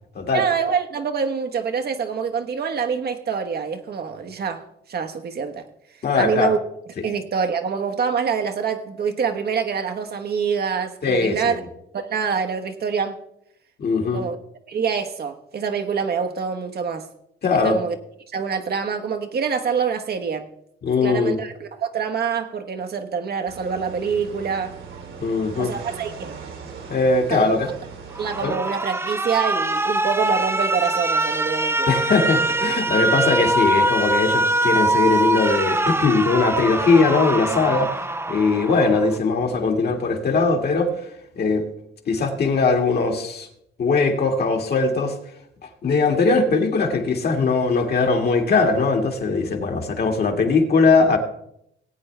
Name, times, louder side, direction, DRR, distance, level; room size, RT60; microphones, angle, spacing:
voice 1, 0.3-5.7 6.2-6.6 7.0-11.6 11.9-13.2 14.0-14.4 14.7-17.1 17.5-18.0 18.3-20.5 21.0-24.8 25.6-26.4 27.3-27.7 28.2-31.9, right 6 dB, 55° right, 1.2 m, -26 dB
voice 2, 6.0-6.5 11.0-11.6 13.8-14.2 17.4-17.8 20.8-21.4 25.2-25.7 26.9-27.7 28.4-28.5 31.9-40.9 41.4-41.6 42.1-43.5 43.8-45.1 45.8-51.2, left 4 dB, 55° left, 2.0 m, -20 dB
sound 1, 23.5-28.5, right 5 dB, 75° right, 2.5 m, -39 dB
Alarm, 28.1-39.2, right 2 dB, 10° right, 0.6 m, -23 dB
18.5 x 8.4 x 3.3 m
cardioid pair, 90°, 20 cm